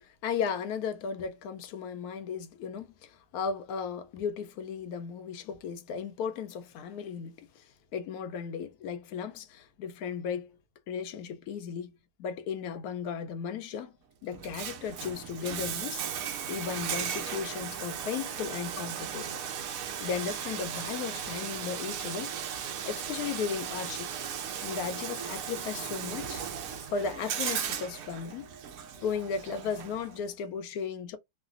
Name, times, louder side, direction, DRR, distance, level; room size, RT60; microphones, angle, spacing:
voice 1, 0.0-7.6 7.9-10.6 10.9-11.9 12.2-13.9 14.2-16.0 16.5-19.3 20.0-22.3 22.9-24.1 24.6-26.4 26.9-28.5 29.0-31.2, left 6 dB, 70° left, 0.9 m, -35 dB
Bathtub (filling or washing), 14.3-30.3, right 8 dB, 85° right, 0.7 m, -36 dB
3.2 x 2.2 x 2.4 m
omnidirectional pair, 2.0 m